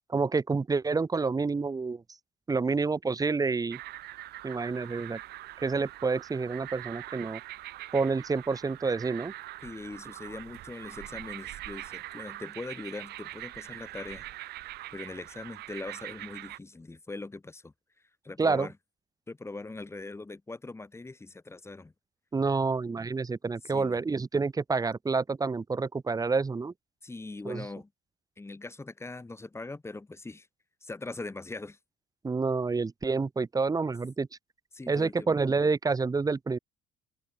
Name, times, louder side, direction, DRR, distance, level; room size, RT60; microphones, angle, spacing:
voice 1, 0.1-2.0 2.5-3.8 4.4-5.2 5.6-7.4 7.9-9.3 18.4-18.7 22.3-26.7 27.4-27.6 32.2-34.3 34.9-36.6, right 4 dB, 20° right, 1.5 m, -28 dB
sound 1, 3.7-16.6, right 16 dB, 75° right, 0.9 m, -43 dB
voice 2, 9.6-14.3 14.9-17.7 18.2-18.7 19.3-21.9 23.6-24.0 27.0-27.9 28.4-30.5 30.8-31.8 34.7-35.3, left 3 dB, 15° left, 3.7 m, -41 dB
cardioid pair, 110°, 17 cm